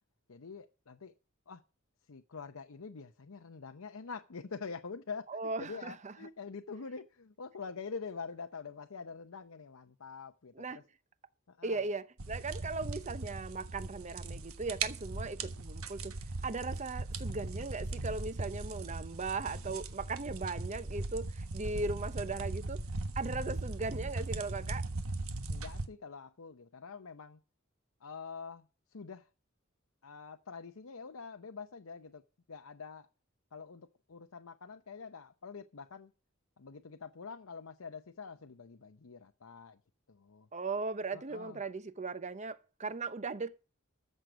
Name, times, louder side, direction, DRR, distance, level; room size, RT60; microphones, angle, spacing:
voice 1, 0.3-1.1 1.5-1.6 2.1-5.3 5.6-10.8 11.5-11.8 25.5-27.4 28.0-29.3 30.0-32.2 32.5-33.1 33.5-36.1 36.6-39.8 40.1-40.5 41.1-41.6, left 5 dB, 90° left, 0.8 m, -46 dB
voice 2, 5.3-6.1 10.5-10.8 11.6-16.1 16.4-22.8 23.2-24.9 40.5-43.6, right 3 dB, 35° right, 0.8 m, -38 dB
sound 1, 12.2-25.9, right 2 dB, 90° right, 1.3 m, -39 dB
14.0 x 6.6 x 7.8 m
head